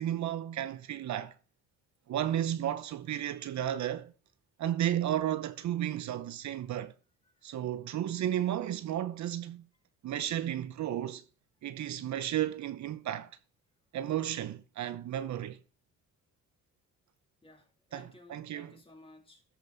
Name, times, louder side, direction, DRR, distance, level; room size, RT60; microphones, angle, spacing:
voice 1, 0.0-1.3 2.1-4.1 4.6-6.9 7.4-9.6 10.0-11.2 11.6-13.3 13.9-15.6 17.9-18.7, right 11 dB, 70° right, 0.9 m, -33 dB
voice 2, 17.4-19.4, left 2 dB, 20° left, 3.0 m, -56 dB
13.5 x 5.3 x 4.0 m
cardioid pair, 90°, 30 cm